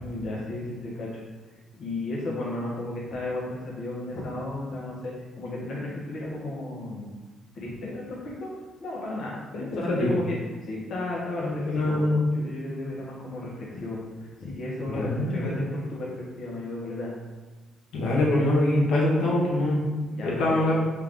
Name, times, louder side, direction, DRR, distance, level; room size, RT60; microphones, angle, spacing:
voice 1, 0.0-1.2 1.8-7.2 7.5-8.5 8.8-10.4 10.6-12.0 12.3-16.1 16.4-17.1 20.1-20.5, left 2 dB, 60° left, -5 dB, 1.0 m, -34 dB
voice 2, 9.5-10.2 11.4-12.2 14.8-15.6 17.9-19.8 20.2-20.8, left 1 dB, 80° left, -4 dB, 1.2 m, -24 dB
4.5 x 2.6 x 3.5 m, 1.3 s
cardioid pair, 90°, 0 cm